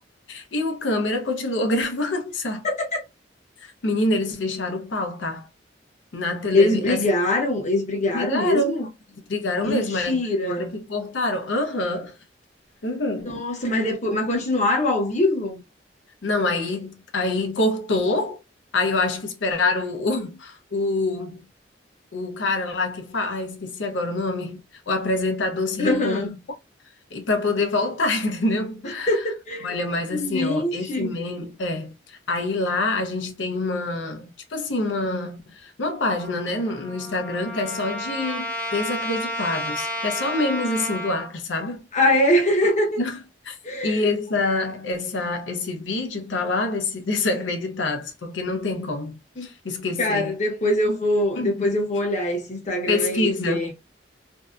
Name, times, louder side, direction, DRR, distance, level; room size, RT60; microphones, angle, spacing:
voice 1, 0.3-2.7 3.6-5.5 6.1-7.0 8.1-8.8 9.1-10.2 10.5-12.2 12.8-13.3 16.2-18.4 18.7-21.5 22.1-24.6 24.9-26.3 27.1-29.2 29.6-41.8 43.0-43.6 43.8-50.3 51.4-51.7 52.9-53.7, left 2 dB, 80° left, 0.6 m, -26 dB
voice 2, 6.5-8.9 9.6-10.7 13.3-15.6 25.8-26.3 29.1-29.7 30.1-31.1 41.9-43.0 43.6-44.1 49.4-49.5 50.0-53.7, left 1 dB, 40° left, 0.8 m, -23 dB
Trumpet, 36.2-41.3, equal, 10° left, 0.6 m, -31 dB
2.6 x 2.2 x 2.4 m
head